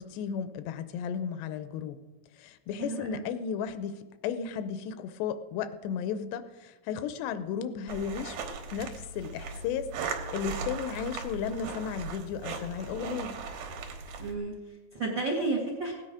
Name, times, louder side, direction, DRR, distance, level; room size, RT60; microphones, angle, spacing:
voice 1, 0.0-2.0 2.4-13.4, left 7 dB, 85° left, 11 dB, 2.9 m, -34 dB
voice 2, 2.8-3.3 14.2-15.9, right 3 dB, 55° right, 0 dB, 1.3 m, -32 dB
sound 1, 7.9-14.4, right 4 dB, 70° right, 2.9 m, -38 dB
17.5 x 9.9 x 4.9 m, 1.2 s
omnidirectional pair, 4.8 m